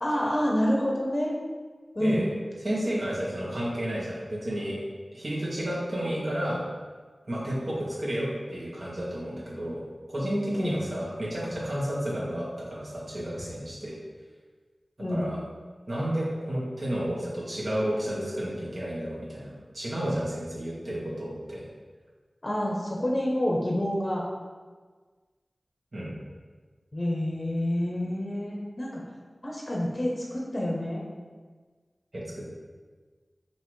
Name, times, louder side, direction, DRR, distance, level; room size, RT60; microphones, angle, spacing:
voice 1, 0.0-1.3 1.9-2.3 10.5-10.8 15.0-15.3 22.4-24.2 26.9-29.0 29.4-31.0, equal, 40° left, -3 dB, 0.7 m, -28 dB
voice 2, 2.6-4.8 5.1-6.6 7.3-9.8 10.1-13.9 15.1-15.4 15.9-21.6 25.9-26.1 32.1-32.5, equal, 55° right, -7 dB, 1.4 m, -31 dB
5.6 x 2.8 x 3.1 m, 1.4 s
wide cardioid pair, 65°, 0 cm